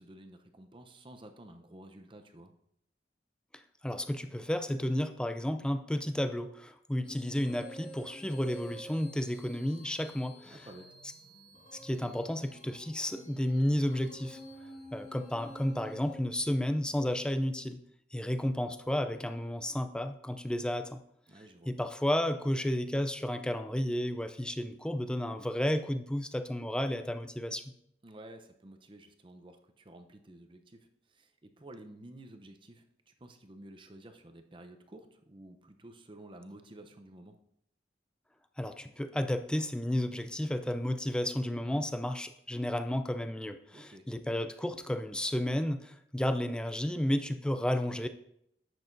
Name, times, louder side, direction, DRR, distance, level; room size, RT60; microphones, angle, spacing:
voice 1, 0.0-2.5 10.5-11.0 21.3-21.7 28.0-37.4 43.7-44.1, right 1 dB, 30° right, 6 dB, 0.7 m, -52 dB
voice 2, 3.5-10.6 11.7-14.4 14.9-17.8 18.1-21.0 21.7-27.6 38.6-48.1, left 1 dB, 5° left, 9 dB, 0.4 m, -32 dB
sound 1, 7.0-16.2, equal, 35° left, 2.2 m, -50 dB
11.0 x 7.8 x 2.6 m, 0.74 s
head